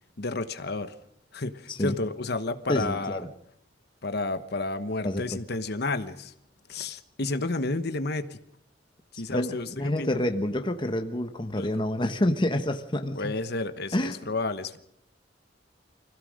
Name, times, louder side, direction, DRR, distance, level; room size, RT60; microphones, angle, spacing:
voice 1, 0.2-0.9 1.3-3.2 4.0-6.3 6.7-8.4 9.1-10.2 11.6-11.8 13.2-14.8, left 2 dB, 60° left, 10 dB, 1.1 m, -31 dB
voice 2, 2.7-3.3 5.0-5.2 9.3-13.3 13.9-14.2, left 1 dB, 25° left, 6 dB, 1.2 m, -28 dB
25.5 x 16.5 x 6.5 m, 0.74 s
head